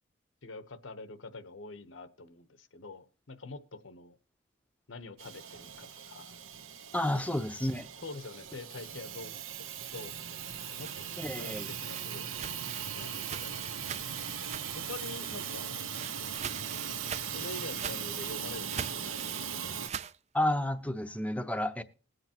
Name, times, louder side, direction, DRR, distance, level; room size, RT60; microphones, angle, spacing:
voice 1, 0.4-4.2 4.9-6.3 7.1-7.3 8.0-9.3 9.6-9.7 9.9-11.5 11.8-12.4 12.9-14.2 14.8-15.8 17.3-19.5, left 3 dB, 75° left, 1.0 m, -46 dB
Hiss / Toilet flush / Trickle dribble, 5.2-19.9, right 8 dB, 90° right, 1.1 m, -39 dB
voice 2, 6.9-7.9 11.2-11.7 20.3-21.8, left 1 dB, 5° left, 0.7 m, -31 dB
sound 1, 10.6-14.9 15.2-20.2, right 7 dB, 35° right, 0.4 m, -43 dB
20.0 x 7.9 x 2.9 m
head